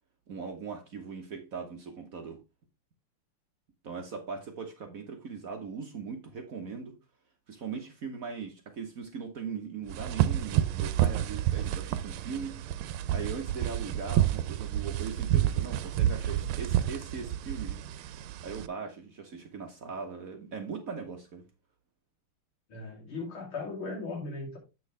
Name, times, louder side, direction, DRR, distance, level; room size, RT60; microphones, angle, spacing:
voice 1, 0.3-2.4 3.8-7.0 7.5-12.6 13.1-17.8 18.4-21.4, right 5 dB, 50° right, 1.2 m, -39 dB
sound 1, 9.9-18.7, right 12 dB, 90° right, 1.5 m, -29 dB
voice 2, 22.7-24.6, left 3 dB, 75° left, 3.7 m, -37 dB
8.3 x 6.2 x 3.3 m
omnidirectional pair, 2.3 m